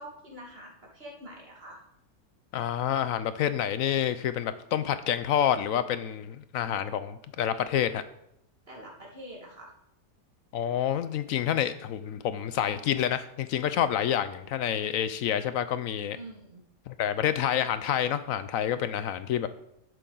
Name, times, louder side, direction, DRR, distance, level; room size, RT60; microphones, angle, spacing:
voice 1, 0.0-1.8 8.7-9.7 16.1-16.6, right 1 dB, 35° right, -2 dB, 2.3 m, -45 dB
voice 2, 2.5-8.0 10.5-16.2 16.9-19.5, left 10 dB, 70° left, 12 dB, 0.8 m, -28 dB
11.5 x 8.3 x 3.9 m, 0.79 s
omnidirectional pair, 1.8 m